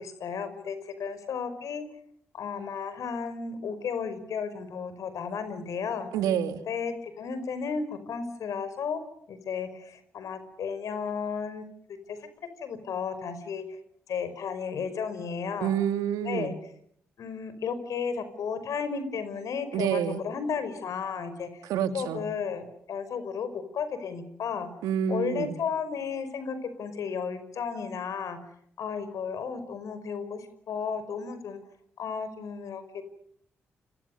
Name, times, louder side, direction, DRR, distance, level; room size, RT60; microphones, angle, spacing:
voice 1, 0.0-1.9 2.3-6.1 6.7-9.0 9.3-11.6 12.1-12.3 12.6-13.6 14.1-15.7 16.2-16.5 17.2-21.7 21.9-24.7 25.1-28.5 28.8-31.6 32.0-33.0, left 6 dB, 65° left, 11 dB, 5.4 m, -33 dB
voice 2, 6.1-6.6 15.6-16.5 19.7-20.2 21.6-22.2 24.8-25.5, right 9 dB, 80° right, 10 dB, 2.3 m, -28 dB
29.5 x 27.5 x 6.7 m, 0.68 s
hypercardioid pair, 40°, 6 cm